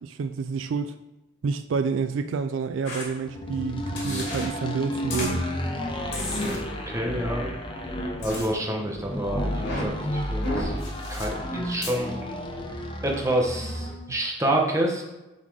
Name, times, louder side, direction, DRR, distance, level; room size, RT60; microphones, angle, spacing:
voice 1, 0.0-0.9 1.4-5.4, right 5 dB, 70° right, 9 dB, 0.4 m, -28 dB
sound 1, 2.9-3.0 4.0-4.5 5.1-5.3 6.1-6.6 8.2-8.5 9.5-9.9 10.4-11.2 11.8-11.9, left 1 dB, 60° left, 2.6 m, -31 dB
sound 2, 3.3-14.1, equal, 25° left, 0.9 m, -32 dB
voice 2, 6.1-6.6 6.9-7.5 8.2-10.7 11.1-12.3 13.0-15.0, right 1 dB, 15° right, 0 dB, 1.0 m, -28 dB
7.1 x 4.2 x 4.9 m, 1.0 s
head